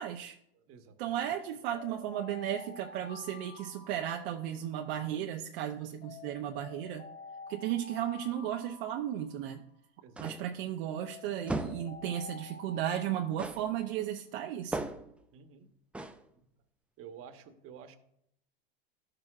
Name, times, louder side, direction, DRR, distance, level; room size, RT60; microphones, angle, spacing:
voice 1, 0.0-0.4 1.0-7.0 7.5-9.6 10.2-14.9, right 11 dB, 65° right, 3 dB, 0.7 m, -35 dB
voice 2, 0.5-1.3 10.0-10.2 11.5-11.6 12.2-12.3 15.3-15.7 16.3-16.4 17.0-18.0, right 7 dB, 45° right, 7 dB, 1.1 m, -51 dB
sound 1, 1.7-4.9 6.0-9.8 10.9-14.1, left 4 dB, 40° left, 1.6 m, -49 dB
sound 2, 10.2-10.6 11.5-11.9 13.4-13.7 14.7-15.2 15.9-16.2, right 2 dB, 5° right, 0.4 m, -37 dB
13.0 x 6.6 x 2.4 m, 0.76 s
supercardioid pair, 110°, 32 cm